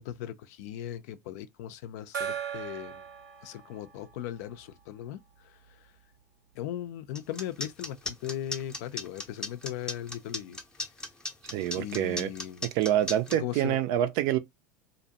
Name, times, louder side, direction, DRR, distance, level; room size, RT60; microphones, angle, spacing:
voice 1, 0.0-3.0 3.4-5.8 6.6-10.6 11.7-12.7 13.3-13.8, left 11 dB, 65° left, 0.4 m, -38 dB
Gong, 2.1-5.4, right 8 dB, 80° right, 0.7 m, -39 dB
sound 1, 7.1-13.4, left 2 dB, 10° left, 0.6 m, -36 dB
voice 2, 11.5-12.3 12.7-14.4, right 12 dB, 55° right, 0.4 m, -26 dB
2.5 x 2.1 x 2.7 m
hypercardioid pair, 90°, 10 cm